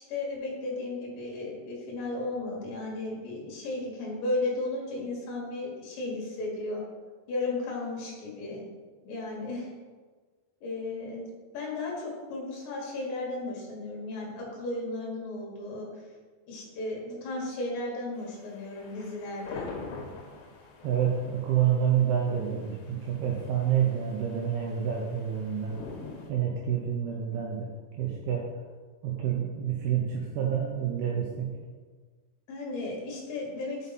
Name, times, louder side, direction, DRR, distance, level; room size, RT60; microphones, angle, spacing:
voice 1, 0.0-6.8 7.3-8.6 9.0-9.7 10.6-11.3 11.5-16.0 16.5-19.7 32.5-33.9, left 2 dB, 60° left, -3 dB, 2.8 m, -34 dB
sound 1, 18.2-26.3, left 4 dB, 85° left, 3.1 m, -45 dB
voice 2, 20.8-25.8 26.3-27.7 28.0-28.5 29.0-31.5, right 9 dB, 80° right, -1 dB, 2.4 m, -28 dB
6.2 x 5.4 x 4.1 m, 1.4 s
omnidirectional pair, 4.9 m